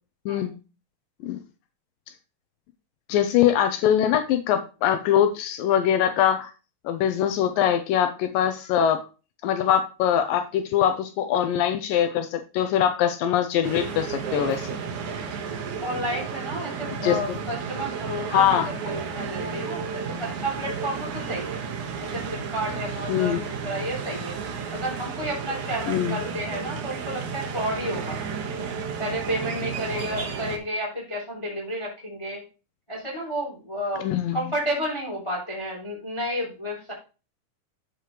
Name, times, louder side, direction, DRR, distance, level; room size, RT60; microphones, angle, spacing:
voice 1, 0.3-0.6 1.2-1.4 3.1-6.5 6.9-9.0 9.4-14.8 17.0-17.4 18.3-18.7 23.1-23.4 25.9-26.2 34.0-34.4, left 10 dB, 90° left, 8 dB, 2.0 m, -23 dB
sound 1, 13.6-30.6, right 6 dB, 60° right, 2.3 m, -33 dB
voice 2, 15.8-21.6 22.0-24.4 24.7-28.2 29.0-32.4 32.9-34.1 34.3-36.9, equal, 10° left, -4 dB, 2.2 m, -31 dB
13.0 x 5.1 x 3.1 m, 0.33 s
omnidirectional pair, 4.7 m